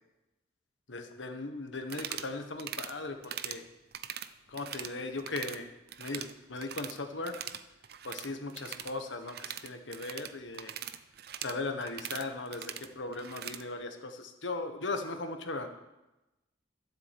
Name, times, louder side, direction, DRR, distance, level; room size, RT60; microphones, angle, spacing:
voice 1, 0.9-3.6 4.5-5.7 6.0-7.4 8.0-10.7 11.4-15.7, left 3 dB, 75° left, 6 dB, 1.4 m, -38 dB
sound 1, 1.8-2.3 2.6-2.9 3.2-3.6 3.9-4.9 5.2-5.6 5.9-7.0 7.2-13.6, right 10 dB, 50° right, 0.6 m, -41 dB
12.5 x 7.7 x 7.6 m, 0.98 s
head